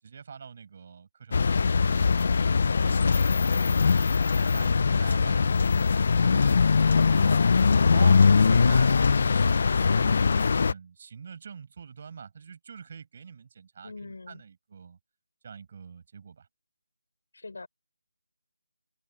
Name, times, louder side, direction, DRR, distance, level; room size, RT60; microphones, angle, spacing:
voice 1, 0.0-2.4 2.8-3.9 4.3-6.6 7.1-7.5 7.8-10.3 10.7-15.0 15.4-16.5, right 6 dB, 40° right, 6.4 m, -44 dB
sound 1, 1.3-10.7, left 5 dB, 45° left, 0.4 m, -21 dB
voice 2, 7.4-8.0 13.8-14.4 17.3-17.7, left 3 dB, 70° left, 5.8 m, -43 dB
figure-of-eight pair, 165°, 0 cm